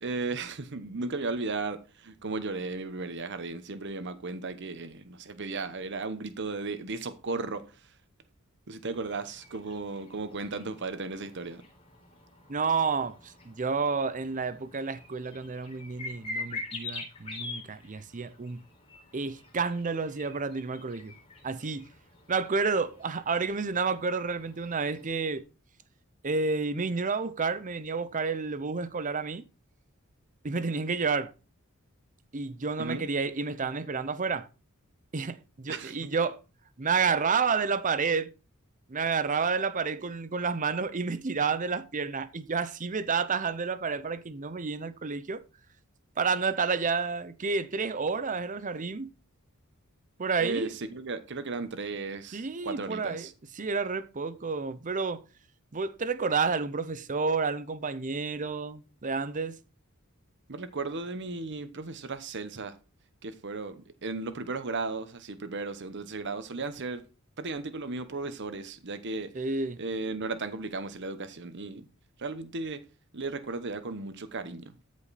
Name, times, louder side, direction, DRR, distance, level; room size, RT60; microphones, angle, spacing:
voice 1, 0.0-7.6 8.7-11.6 32.8-33.0 35.7-35.9 50.4-53.3 60.5-62.7 63.2-67.0 67.4-69.3 69.8-71.9 72.2-72.8 73.1-74.7, right 3 dB, 55° right, 1.0 m, -35 dB
sound 1, 8.9-25.4, left 3 dB, 25° left, 3.9 m, -45 dB
voice 2, 12.5-18.6 19.1-21.1 21.4-21.9 22.3-25.4 26.2-29.4 30.4-31.3 32.3-34.5 35.1-36.4 36.8-38.3 38.9-45.4 46.2-49.1 50.2-50.7 52.3-55.2 55.7-59.6 69.3-69.8, right 4 dB, 35° right, 0.7 m, -30 dB
13.5 x 5.2 x 4.2 m
head